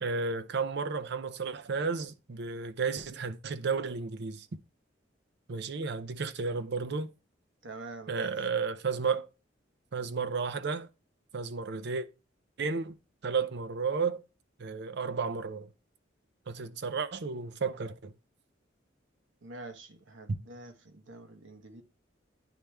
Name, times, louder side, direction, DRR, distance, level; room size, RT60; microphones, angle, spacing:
voice 1, 0.0-4.5 5.5-7.1 8.1-9.3 9.9-10.9 11.3-12.1 12.6-12.9 13.2-14.2 14.6-15.7 16.5-18.1, right 5 dB, 60° right, 0.6 m, -32 dB
voice 2, 7.6-8.3 19.4-21.8, right 2 dB, 80° right, 1.0 m, -46 dB
10.5 x 3.4 x 3.1 m
head